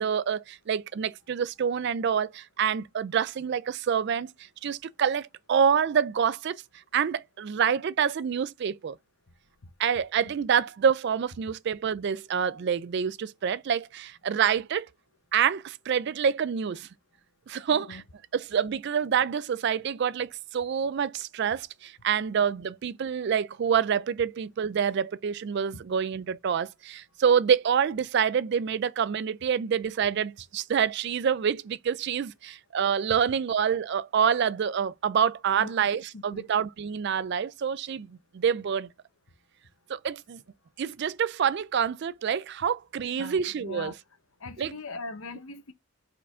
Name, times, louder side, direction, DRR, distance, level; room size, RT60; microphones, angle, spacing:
voice 1, 0.0-4.3 4.6-6.6 6.9-9.0 9.8-14.9 15.3-16.9 17.5-18.0 18.3-38.9 39.9-40.4 40.8-43.9 44.6-44.7, right 7 dB, 50° right, 0.3 m, -27 dB
voice 2, 17.7-18.0 25.7-25.8 35.6-35.9 36.1-36.4 43.1-43.9 44.4-45.7, left 3 dB, 70° left, 0.8 m, -41 dB
4.9 x 4.4 x 5.4 m
head